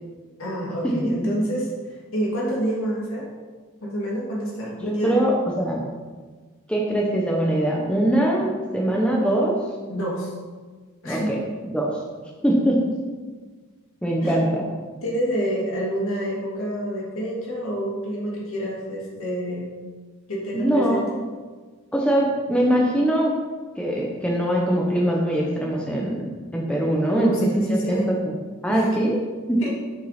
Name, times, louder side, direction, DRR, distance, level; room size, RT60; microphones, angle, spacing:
voice 1, 0.4-3.3 3.8-5.2 9.9-10.3 11.0-11.3 14.2-14.4 15.0-19.7 20.3-21.1 27.1-28.1 28.7-29.0 29.6-29.7, right 1 dB, 65° left, -5 dB, 2.8 m, -28 dB
voice 2, 4.8-5.8 6.7-9.6 11.0-11.4 11.7-12.0 12.4-12.8 14.0-14.6 20.5-21.0 21.9-23.3 23.8-28.3 28.6-29.2 29.5-29.6, right 1 dB, 5° left, -2 dB, 0.8 m, -22 dB
8.5 x 6.4 x 4.2 m, 1.4 s
head